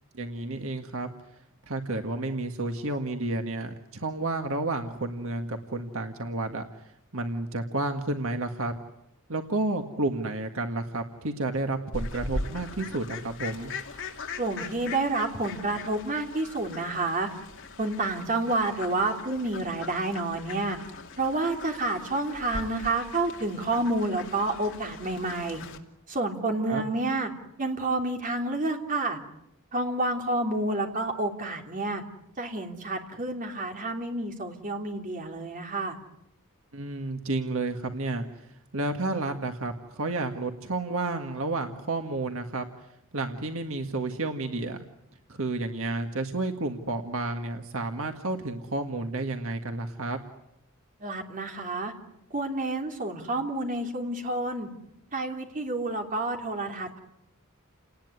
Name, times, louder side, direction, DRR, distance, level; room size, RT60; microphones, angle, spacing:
voice 1, 0.1-1.1 1.7-6.6 7.1-8.7 9.3-13.7 26.7-26.8 36.7-42.7 43.1-44.8 45.3-50.2, right 2 dB, 70° right, 5 dB, 1.8 m, -31 dB
Fowl, 11.9-25.8, left 3 dB, 60° left, 2.7 m, -40 dB
voice 2, 14.4-17.3 17.8-20.8 21.2-25.6 26.1-27.3 27.6-29.2 29.7-32.0 32.4-35.9 51.0-51.9 52.3-54.7 55.1-57.0, right 2 dB, 40° right, 3 dB, 3.2 m, -29 dB
29.5 x 19.5 x 9.7 m, 0.84 s
head